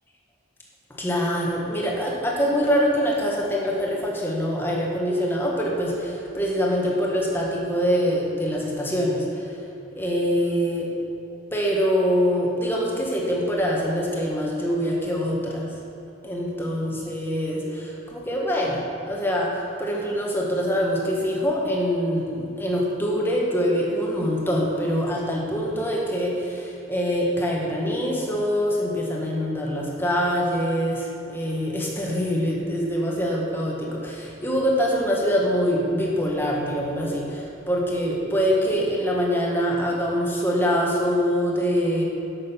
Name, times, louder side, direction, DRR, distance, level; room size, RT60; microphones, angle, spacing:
voice 1, 0.9-9.5 10.0-10.9 11.5-15.7 16.2-42.0, equal, 10° left, -3 dB, 1.6 m, -24 dB
11.5 x 7.8 x 5.9 m, 3.0 s
head